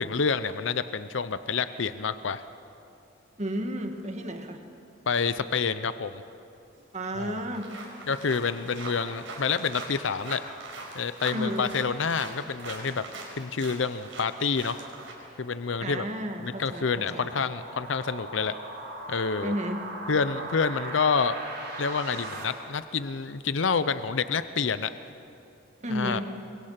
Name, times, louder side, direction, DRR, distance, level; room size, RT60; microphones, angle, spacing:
voice 1, 0.0-2.4 5.1-6.2 7.2-7.4 8.1-10.4 10.9-13.0 13.3-14.8 15.4-16.0 16.4-18.5 19.1-19.5 20.1-21.4 21.8-24.9 25.9-26.2, left 5 dB, 70° left, 12 dB, 0.7 m, -28 dB
voice 2, 3.4-4.6 6.9-7.7 11.3-11.8 15.8-17.3 19.4-19.8 25.8-26.2, equal, 35° right, 5 dB, 2.0 m, -32 dB
sound 1, 6.8-6.9 7.2-15.1, right 3 dB, 85° right, 5.4 m, -42 dB
sound 2, 14.5-22.4, right 2 dB, 60° right, 6.3 m, -40 dB
28.0 x 23.5 x 5.9 m, 2.6 s
head